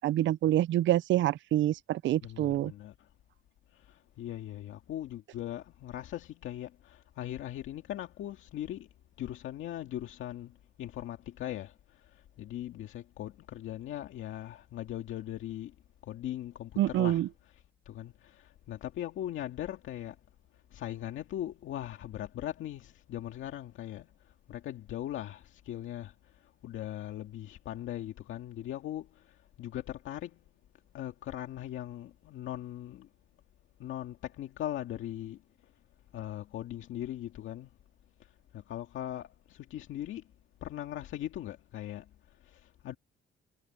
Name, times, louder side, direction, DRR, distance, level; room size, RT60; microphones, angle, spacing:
voice 1, 0.0-2.7 16.8-17.3, right 13 dB, 70° right, 0.5 m, -27 dB
voice 2, 2.2-3.1 3.7-8.9 9.2-15.8 16.0-17.2 17.9-20.2 20.5-30.5 30.9-33.1 33.8-35.7 36.1-37.7 38.2-40.2 40.6-43.0, left 12 dB, 80° left, 2.0 m, -40 dB
cardioid pair, 90°, 20 cm